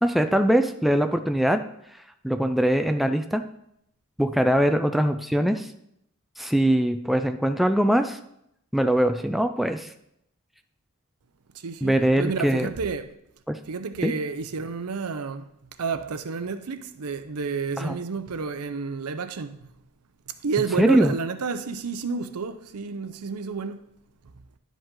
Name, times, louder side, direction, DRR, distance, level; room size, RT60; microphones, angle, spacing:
voice 1, 0.0-1.6 2.2-3.4 4.2-5.7 6.4-8.2 8.7-9.9 11.8-12.7 13.5-13.6 14.0-14.1 17.8-18.0 20.8-21.1, right 1 dB, ahead, 0.4 m, -22 dB
voice 2, 11.6-13.1 13.7-15.5 15.8-19.7 20.4-23.9, right 5 dB, 80° right, 0.6 m, -30 dB
11.0 x 5.2 x 3.8 m
head